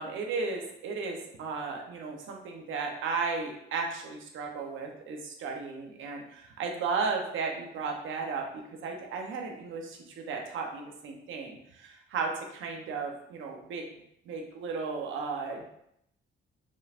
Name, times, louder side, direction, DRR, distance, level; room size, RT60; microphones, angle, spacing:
voice 1, 0.0-8.4 8.8-13.8 14.3-15.7, right 4 dB, 80° right, 1 dB, 0.9 m, -35 dB
5.3 x 3.4 x 2.5 m, 0.76 s
cardioid pair, 90°, 20 cm